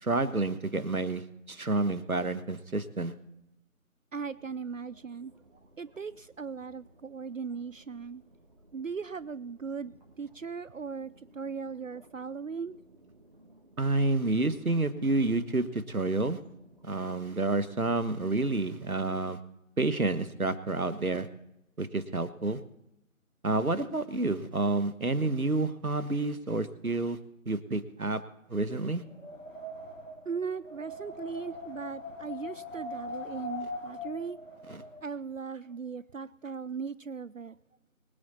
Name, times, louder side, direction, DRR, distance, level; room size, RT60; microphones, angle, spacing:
voice 1, 0.0-3.1 13.8-16.4 16.8-19.4 19.8-21.3 21.8-22.6 23.4-27.2 27.4-28.2 28.5-29.0 34.7-34.8, right 2 dB, 85° right, 12 dB, 1.5 m, -29 dB
voice 2, 4.1-5.3 5.8-8.2 8.7-12.8 30.3-34.4 35.0-37.6, right 5 dB, 65° right, 18 dB, 0.5 m, -38 dB
sound 1, 4.2-17.7, right 1 dB, 35° right, 3.7 m, -59 dB
Wind, 29.0-35.0, left 2 dB, 60° left, 2.8 m, -41 dB
23.0 x 8.1 x 4.3 m, 0.85 s
figure-of-eight pair, 175°, 42 cm